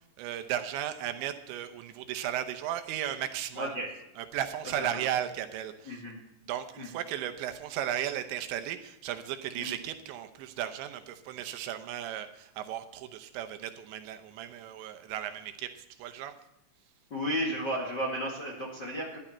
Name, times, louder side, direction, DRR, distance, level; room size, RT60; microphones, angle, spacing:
voice 1, 0.2-3.7 4.2-6.0 6.5-16.3, right 11 dB, 80° right, 9 dB, 3.1 m, -35 dB
voice 2, 3.5-3.9 4.8-5.0 5.8-6.2 6.8-6.9 9.6-9.7 17.1-19.2, equal, 40° left, -4 dB, 1.5 m, -33 dB
14.0 x 11.0 x 4.3 m, 0.85 s
omnidirectional pair, 5.3 m